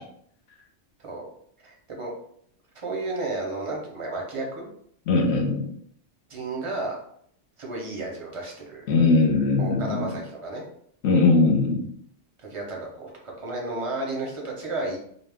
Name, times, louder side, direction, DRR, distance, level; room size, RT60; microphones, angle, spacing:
voice 1, 1.6-2.1 2.7-4.7 6.3-7.0 7.6-8.9 9.6-10.7 12.4-15.0, right 2 dB, 40° right, -1 dB, 0.5 m, -32 dB
voice 2, 5.1-5.7 8.9-10.1 11.0-11.8, left 3 dB, 70° left, 0 dB, 0.8 m, -20 dB
2.3 x 2.0 x 3.3 m, 0.66 s
omnidirectional pair, 1.2 m